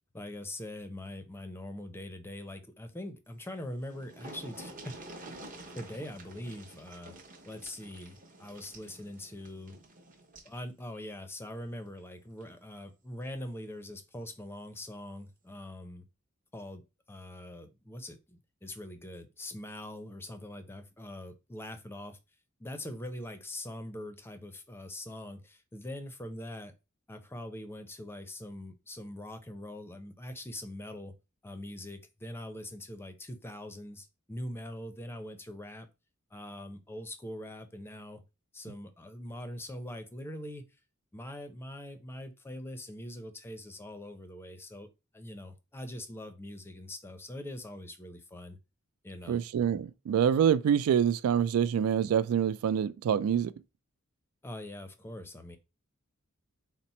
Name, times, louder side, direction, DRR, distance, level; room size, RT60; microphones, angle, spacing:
voice 1, 0.1-4.9 5.8-7.1 7.5-9.8 10.4-16.1 16.5-22.2 22.6-26.7 27.1-31.1 31.4-35.9 36.3-38.2 38.5-40.7 41.1-44.9 45.1-48.6 49.0-49.4 54.4-55.6, left 1 dB, 10° left, 0.5 m, -43 dB
sound 1, 3.8-10.6 11.9-12.0 12.4-12.5, right 2 dB, 40° right, 0.9 m, -49 dB
voice 2, 49.3-53.5, right 8 dB, 80° right, 0.3 m, -26 dB
4.1 x 2.0 x 4.2 m
head